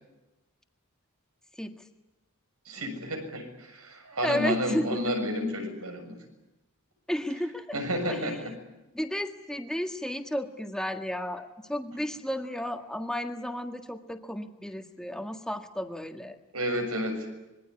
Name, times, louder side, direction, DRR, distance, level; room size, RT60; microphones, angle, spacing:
voice 1, 2.7-6.2 7.7-8.5 16.5-17.3, equal, 80° right, 4 dB, 7.0 m, -31 dB
voice 2, 4.2-5.0 7.1-7.7 8.1-8.2 8.9-16.4, equal, 5° left, 5 dB, 1.8 m, -33 dB
26.0 x 22.5 x 9.8 m, 1.0 s
head